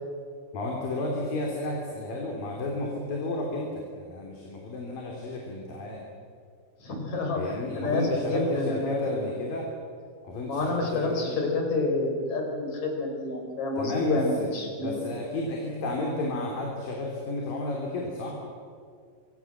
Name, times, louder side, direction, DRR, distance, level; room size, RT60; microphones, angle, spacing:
voice 1, 0.5-6.0 7.3-9.7 10.2-11.4 13.8-14.5 14.8-18.4, left 2 dB, 85° left, -1 dB, 5.2 m, -32 dB
voice 2, 6.8-9.3 10.4-15.1, left 2 dB, 55° left, 2 dB, 6.1 m, -29 dB
26.5 x 25.5 x 7.5 m, 2.2 s
omnidirectional pair, 3.9 m